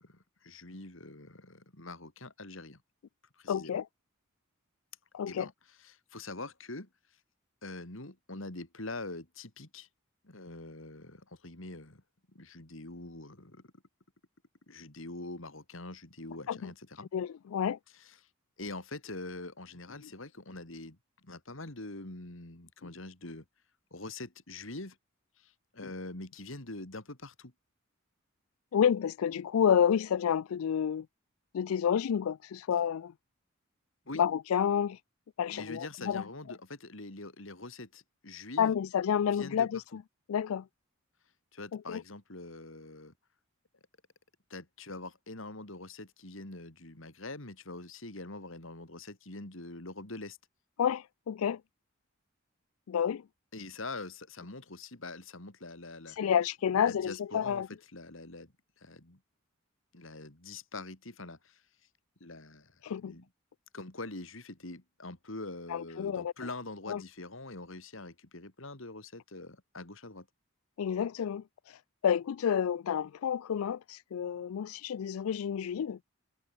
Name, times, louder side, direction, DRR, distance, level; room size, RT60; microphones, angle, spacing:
voice 1, 0.0-2.8 3.4-3.7 5.3-5.5 5.8-6.9 7.6-9.9 10.2-12.0 12.3-13.7 14.7-17.1 18.0-18.1 18.6-23.4 23.9-25.0 25.4-27.5 34.1-34.2 35.5-38.7 39.3-40.0 41.5-43.1 44.5-50.4 53.5-56.2 56.8-58.5 58.8-59.2 59.9-61.6 62.2-63.3 63.7-70.3, left 2 dB, 65° left, 2.9 m, -44 dB
voice 2, 3.5-3.8 5.1-5.5 16.5-16.7 17.1-17.8 28.7-31.1 31.5-33.1 34.1-35.0 35.4-36.2 38.6-40.0 40.3-40.7 41.7-42.0 50.8-51.6 52.9-53.2 56.2-57.7 62.8-63.2 65.7-66.3 66.9-67.0 70.8-71.4 72.0-76.0, left 8 dB, 80° left, 0.4 m, -29 dB
head